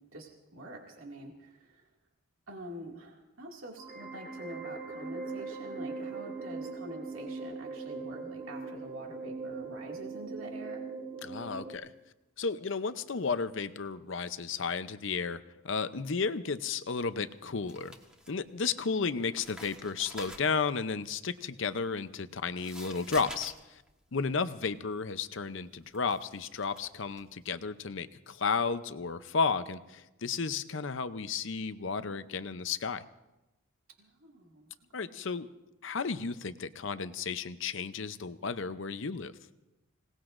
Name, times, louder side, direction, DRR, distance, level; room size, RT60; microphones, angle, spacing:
voice 1, 0.1-1.9 2.5-10.9 31.8-32.1 34.0-34.7 35.0-35.2, right 1 dB, 70° right, 0 dB, 2.3 m, -46 dB
sound 1, 3.8-11.8, right 3 dB, 35° right, 5.3 m, -40 dB
voice 2, 11.2-11.9 12.4-17.9 18.3-23.8 24.1-33.0 34.9-35.5 35.8-39.3, left 5 dB, 60° left, 12 dB, 0.7 m, -33 dB
sound 2, 17.1-18.9 19.2-27.4, equal, 5° right, 1.3 m, -49 dB
26.5 x 18.5 x 2.6 m, 1.0 s
head